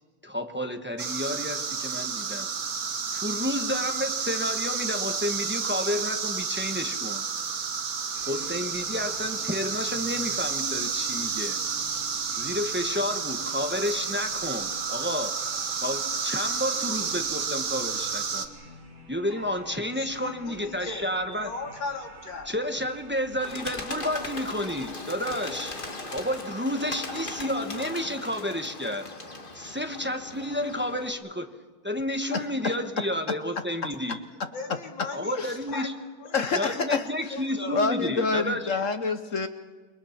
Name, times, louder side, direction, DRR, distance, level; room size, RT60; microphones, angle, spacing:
voice 1, 0.2-2.5 3.1-7.2 8.3-11.6 12.4-15.4 15.7-18.5 19.1-21.5 22.5-25.8 26.1-29.1 29.5-31.5 31.8-34.2 35.1-35.9 36.5-38.7, left 1 dB, 10° right, 5 dB, 0.8 m, -31 dB
sound 1, 1.0-18.5, right 6 dB, 50° right, 1.7 m, -31 dB
sound 2, 8.1-24.9, right 1 dB, 75° right, 3.9 m, -49 dB
voice 2, 19.4-21.1 21.4-22.5 34.5-35.4 35.7-35.9 36.2-36.6 36.9-37.9, left 4 dB, 70° left, 2 dB, 3.0 m, -38 dB
Bird, 23.4-31.1, left 2 dB, 25° left, 2.1 m, -39 dB
voice 3, 36.3-37.0 37.7-39.5, left 4 dB, 50° left, 9 dB, 1.0 m, -26 dB
28.5 x 22.0 x 5.9 m, 1.4 s
omnidirectional pair, 2.2 m